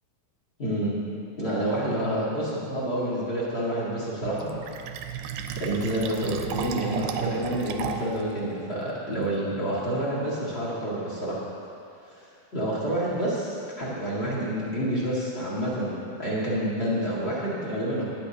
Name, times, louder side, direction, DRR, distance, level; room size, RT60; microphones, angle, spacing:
voice 1, 0.6-0.9 1.4-4.5 5.5-11.4 12.0-18.0, right 1 dB, 30° left, -7 dB, 1.1 m, -28 dB
Fill (with liquid), 4.2-8.2, right 8 dB, 85° right, 2.6 m, -34 dB
17.5 x 10.0 x 2.9 m, 2.5 s
omnidirectional pair, 4.6 m